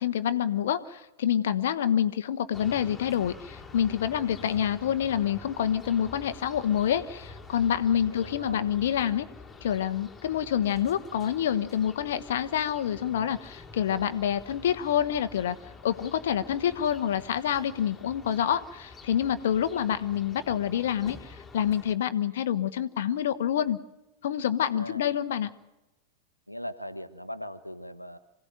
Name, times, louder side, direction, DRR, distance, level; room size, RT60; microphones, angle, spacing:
voice 1, 0.0-9.3 9.6-15.6 15.8-23.8 24.2-25.5, left 9 dB, 60° left, 11 dB, 1.0 m, -27 dB
sound 1, 2.5-21.9, left 3 dB, 15° left, 2.7 m, -47 dB
voice 2, 8.1-8.7 24.7-25.0 26.5-28.2, equal, 90° left, 10 dB, 1.0 m, -39 dB
26.5 x 16.5 x 9.1 m, 0.95 s
figure-of-eight pair, 90°, 0 cm